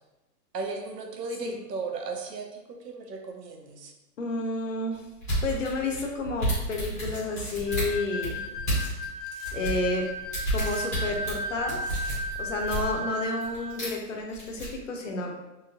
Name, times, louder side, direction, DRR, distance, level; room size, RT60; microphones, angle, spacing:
voice 1, 0.5-3.9, right 3 dB, 85° right, 3 dB, 0.8 m, -36 dB
voice 2, 4.2-5.0 5.4-8.4 9.5-10.1 10.5-11.8 12.4-15.3, left 2 dB, 55° left, 2 dB, 0.6 m, -30 dB
sound 1, 5.2-9.1 9.4-12.9 13.4-14.0 14.3-14.7, right 1 dB, 10° left, 0.6 m, -31 dB
sound 2, 7.0-7.6 8.8-8.9 9.2-9.5 10.6-10.9 11.8-12.2, right 2 dB, 45° right, 0.7 m, -45 dB
sound 3, 7.6-13.7, equal, 15° right, 1.2 m, -35 dB
3.2 x 2.9 x 2.3 m, 1.0 s
hypercardioid pair, 175°, 47 cm